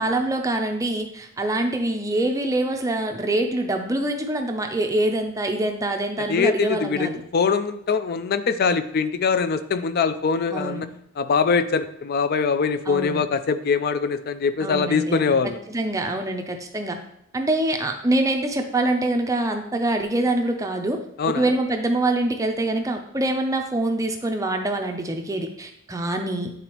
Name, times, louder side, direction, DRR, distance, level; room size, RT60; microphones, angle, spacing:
voice 1, 0.0-7.1 10.5-10.8 12.9-13.2 14.6-15.4 15.7-17.0 17.3-26.5, right 1 dB, 15° right, 4 dB, 0.5 m, -25 dB
voice 2, 6.3-10.9 11.2-15.6 21.2-21.5, left 5 dB, 45° left, 11 dB, 0.4 m, -23 dB
9.4 x 3.9 x 3.0 m, 0.74 s
head